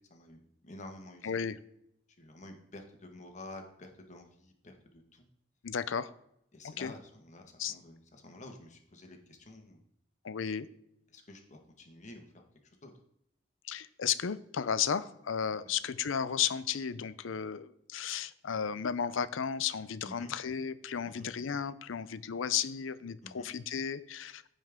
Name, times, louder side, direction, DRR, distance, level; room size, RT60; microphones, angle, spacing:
voice 1, 0.6-1.4 2.2-5.2 6.5-9.8 11.1-12.2 12.8-12.9 15.6-15.7 20.0-20.3 21.0-21.2 23.2-23.5, left 2 dB, 40° left, 3 dB, 1.5 m, -50 dB
voice 2, 1.2-1.6 5.6-6.1 6.6-6.9 7.6-7.8 10.2-10.7 13.7-24.5, left 7 dB, 90° left, 15 dB, 0.6 m, -34 dB
15.0 x 5.4 x 3.7 m, 0.75 s
head